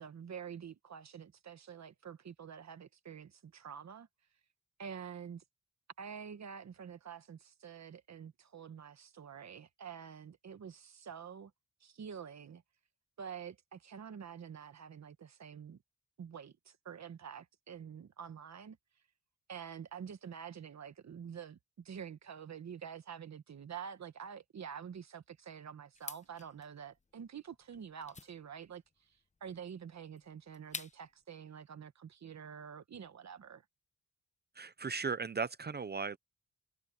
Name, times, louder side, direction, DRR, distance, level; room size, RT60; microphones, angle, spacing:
voice 1, 0.0-4.1 4.8-5.4 6.0-11.5 11.8-12.6 13.2-15.8 16.2-18.8 19.5-33.6, right 7 dB, 60° right, 1.4 m, -47 dB
sound 1, 25.9-31.2, left 4 dB, 20° left, 0.9 m, -50 dB
voice 2, 34.6-36.2, right 5 dB, 30° right, 0.6 m, -37 dB
wide cardioid pair, 140°, 32 cm